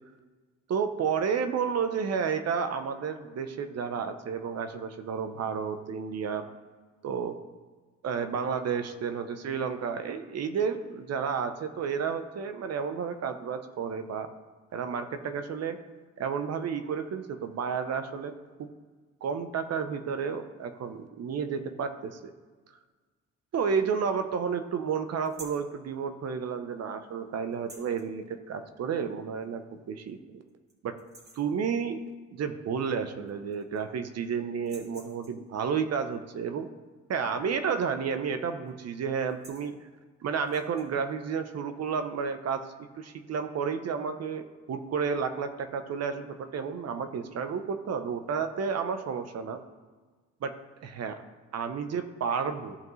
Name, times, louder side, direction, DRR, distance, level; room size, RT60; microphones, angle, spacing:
voice 1, 0.7-6.4 7.0-7.4 8.0-14.3 14.7-15.8 16.2-18.3 18.6-18.7 19.2-22.2 23.5-30.4 30.8-30.9 31.3-32.0 32.3-36.7 37.1-39.9 40.2-42.6 43.0-49.6 50.4-50.5 50.8-51.2 51.5-52.8, right 6 dB, 55° right, 8 dB, 0.8 m, -31 dB
sound 1, 25.2-25.7 27.5-28.1 29.4-29.5 30.0-30.1 30.5-30.7 31.0-31.5 32.9-33.0 33.3-34.0 34.6-35.5 37.8-38.1 38.4-38.7 39.2-39.7 40.4-40.9, right 2 dB, 35° right, 2.4 m, -51 dB
14.5 x 5.2 x 3.1 m, 1.4 s
cardioid pair, 90°, 30 cm